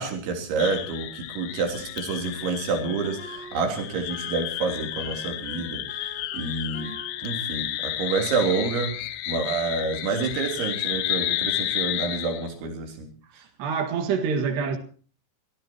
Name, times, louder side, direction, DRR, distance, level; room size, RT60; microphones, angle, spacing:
voice 1, 0.0-6.9 7.2-9.0 9.3-13.1, right 4 dB, 85° right, 5.7 m, -28 dB
sound 1, 0.6-12.5, left 14 dB, 80° left, 3.2 m, -32 dB
Wind instrument woodwind instrument, 1.8-9.3, right 1 dB, 15° right, 5.8 m, -47 dB
voice 2, 13.6-14.8, right 6 dB, 70° right, 4.0 m, -26 dB
25.5 x 18.0 x 2.9 m
omnidirectional pair, 5.2 m